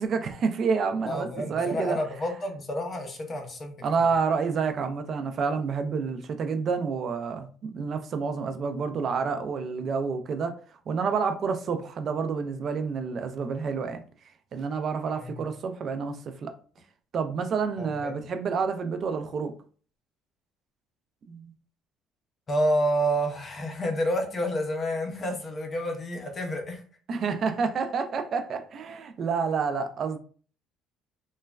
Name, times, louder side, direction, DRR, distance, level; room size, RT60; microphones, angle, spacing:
voice 1, 0.0-2.0 3.8-10.5 10.9-14.0 14.5-16.5 17.1-19.5 21.3-21.5 27.1-30.2, right 5 dB, 40° right, 0.3 m, -29 dB
voice 2, 1.0-3.8 15.2-15.5 17.8-18.1 22.5-26.8, equal, 25° left, 0.5 m, -29 dB
3.0 x 2.2 x 2.3 m
cardioid pair, 160°, 0 cm